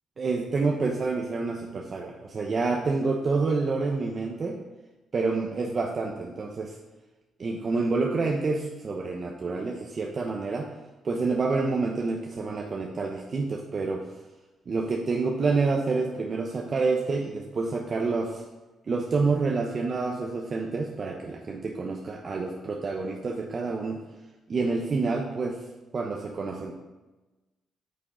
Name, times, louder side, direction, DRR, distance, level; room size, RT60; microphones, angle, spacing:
voice 1, 0.2-4.6 5.1-6.8 7.4-10.7 11.0-14.1 14.7-18.4 18.9-24.0 24.5-25.6 25.9-26.7, right 3 dB, 40° right, 1 dB, 0.8 m, -28 dB
8.5 x 6.6 x 3.9 m, 1.1 s
cardioid pair, 90°, 0 cm